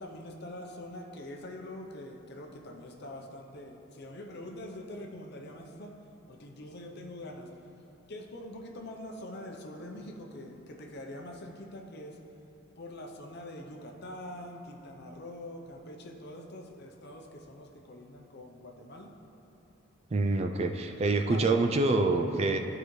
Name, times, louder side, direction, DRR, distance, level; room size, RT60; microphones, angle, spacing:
voice 1, 0.0-5.9 6.3-7.5 8.1-12.2 12.8-19.1 21.3-21.5, left 1 dB, 50° left, 2 dB, 0.7 m, -44 dB
voice 2, 20.1-22.6, right 2 dB, 30° right, 5 dB, 0.3 m, -26 dB
13.0 x 4.9 x 3.2 m, 2.9 s
head